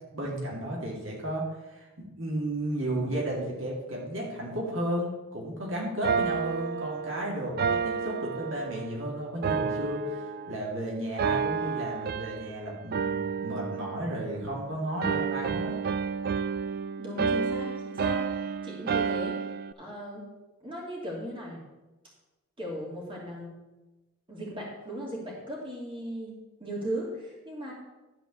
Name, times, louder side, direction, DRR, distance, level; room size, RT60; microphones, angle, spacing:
voice 1, 0.1-10.2 10.5-15.7, right 1 dB, 65° right, -3 dB, 2.2 m, -33 dB
sound 1, 6.0-9.0 9.4-10.8 11.2-12.6 12.9-14.6 15.0-19.7, right 6 dB, 45° right, 0.3 m, -30 dB
voice 2, 17.0-19.5 19.8-20.2 20.6-21.6 22.6-23.5 24.3-26.3 26.6-27.7, equal, 25° right, -4 dB, 2.7 m, -37 dB
12.0 x 4.6 x 6.9 m, 1.1 s
head